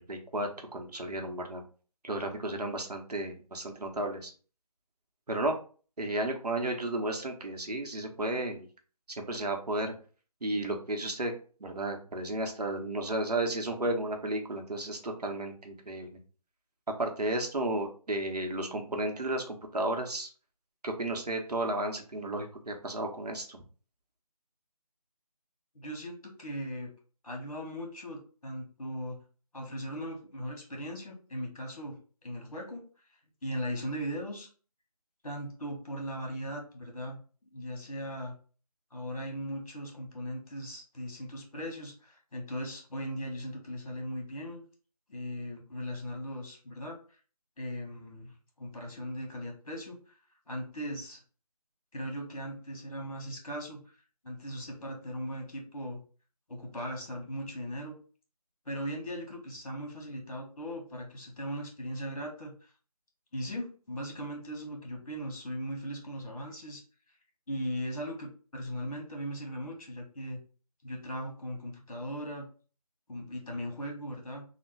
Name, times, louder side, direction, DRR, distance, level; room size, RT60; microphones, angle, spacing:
voice 1, 0.0-1.6 2.0-4.3 5.3-5.6 6.0-8.7 9.2-9.9 10.4-11.3 11.6-16.1 16.9-20.3 20.8-23.6, right 1 dB, 80° right, 3 dB, 0.9 m, -33 dB
voice 2, 25.7-26.9 27.2-29.2 29.5-32.0 32.2-32.8 33.4-34.5 35.2-37.2 37.5-38.4 38.9-44.6 45.1-47.0 47.6-50.2 50.5-51.2 51.9-53.9 54.2-56.0 56.5-58.0 58.6-62.7 63.3-66.8 67.5-70.4 70.8-72.5 73.1-74.4, equal, 60° left, 0 dB, 1.5 m, -38 dB
3.2 x 2.2 x 3.2 m, 0.39 s
figure-of-eight pair, 175°, 20 cm